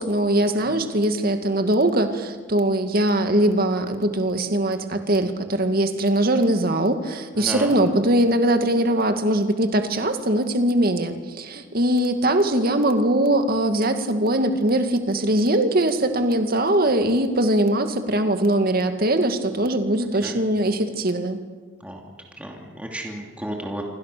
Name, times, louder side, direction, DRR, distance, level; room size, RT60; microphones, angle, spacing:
voice 1, 0.0-21.4, right 1 dB, 50° right, 7 dB, 2.2 m, -21 dB
voice 2, 7.4-7.8 20.2-20.4 21.8-22.0 22.4-23.8, right 1 dB, 5° right, 0 dB, 2.8 m, -32 dB
27.5 x 24.5 x 6.9 m, 1.5 s
head